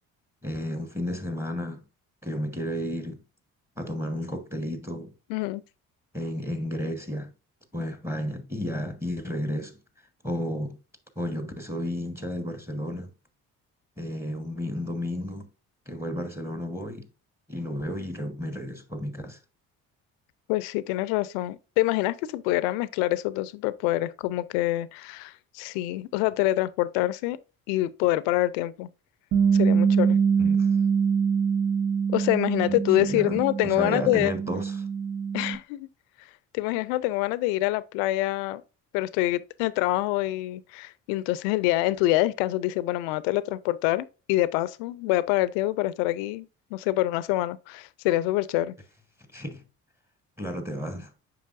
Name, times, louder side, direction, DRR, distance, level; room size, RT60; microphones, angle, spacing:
voice 1, 0.4-1.8 2.2-3.2 3.8-5.1 6.1-7.3 7.7-9.8 10.2-10.8 11.2-13.1 14.0-15.5 15.9-17.1 17.5-19.4 30.4-30.7 32.7-34.9 49.3-49.6 50.4-51.1, equal, 5° right, 1.3 m, -32 dB
voice 2, 5.3-5.6 20.5-27.4 27.7-28.9 29.5-30.2 32.1-34.3 35.3-35.9 36.5-38.6 38.9-48.7, left 16 dB, 75° left, 0.6 m, -26 dB
Bass guitar, 29.3-35.6, right 6 dB, 60° right, 1.7 m, -24 dB
7.6 x 5.3 x 2.5 m
hypercardioid pair, 50°, 43 cm